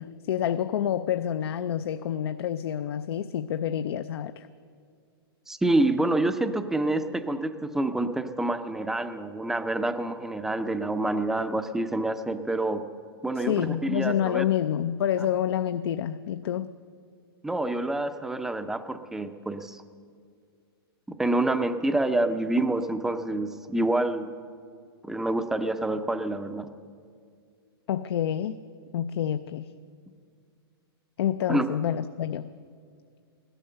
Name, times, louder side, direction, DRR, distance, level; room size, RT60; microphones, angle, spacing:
voice 1, 0.0-4.5 13.4-16.7 27.9-28.6 28.9-29.7 31.2-32.5, left 10 dB, 75° left, 11 dB, 0.5 m, -28 dB
voice 2, 5.5-12.8 13.2-14.4 17.4-19.8 21.1-24.3 25.0-26.7 31.5-31.7, right 2 dB, 5° right, 9 dB, 0.5 m, -27 dB
15.0 x 12.5 x 6.7 m, 2.2 s
hypercardioid pair, 150°, 13 cm